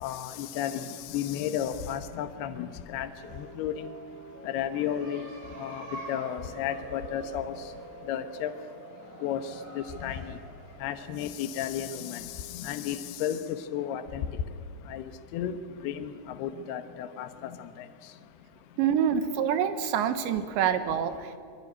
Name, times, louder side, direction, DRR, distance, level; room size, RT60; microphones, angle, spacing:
voice 1, 0.0-3.1 3.4-3.9 4.5-5.3 5.6-7.5 8.1-8.5 9.2-9.4 9.8-10.2 10.8-14.3 14.9-15.1 15.3-15.6 15.8-16.1 16.4-17.5, left 10 dB, 70° left, 8 dB, 2.7 m, -33 dB
sound 1, 3.0-12.5, right 2 dB, 45° right, 5.4 m, -46 dB
voice 2, 18.8-21.4, right 8 dB, 75° right, 9 dB, 3.6 m, -26 dB
24.5 x 23.5 x 9.8 m, 2.3 s
omnidirectional pair, 5.4 m